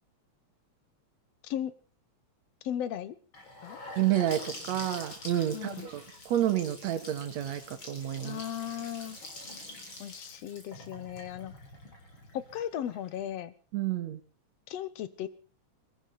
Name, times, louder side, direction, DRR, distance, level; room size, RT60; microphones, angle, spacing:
voice 1, 2.6-3.2 3.6-3.8 5.5-5.9 8.2-9.2 10.0-11.5 12.3-13.5 14.7-15.3, left 10 dB, 65° left, 15 dB, 2.1 m, -36 dB
Gurgling / Sink (filling or washing) / Bathtub (filling or washing), 3.3-13.2, left 2 dB, 40° left, 4.8 m, -46 dB
voice 2, 4.0-8.4 13.7-14.2, right 12 dB, 70° right, 8 dB, 2.8 m, -30 dB
23.0 x 14.5 x 4.2 m, 0.38 s
omnidirectional pair, 3.3 m